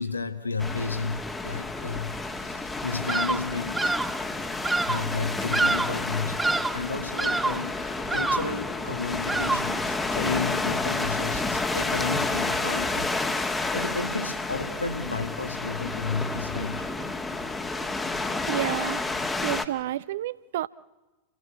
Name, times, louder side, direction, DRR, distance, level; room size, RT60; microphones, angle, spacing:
voice 1, 0.0-3.9 4.9-6.4 6.7-16.9, left 4 dB, 80° left, 9 dB, 1.8 m, -32 dB
sound 1, 0.6-19.6, left 3 dB, 10° left, 1.5 m, -30 dB
Bird vocalization bird call bird song, 3.1-3.5 3.7-4.2 4.6-5.1 5.5-6.0 6.4-6.8 7.2-7.7 8.1-8.6 9.3-9.8, right 3 dB, 10° right, 0.8 m, -27 dB
voice 2, 18.5-19.0 19.4-20.7, right 13 dB, 55° right, 19 dB, 0.7 m, -30 dB
29.5 x 15.5 x 8.3 m, 1.2 s
figure-of-eight pair, 90°, 0 cm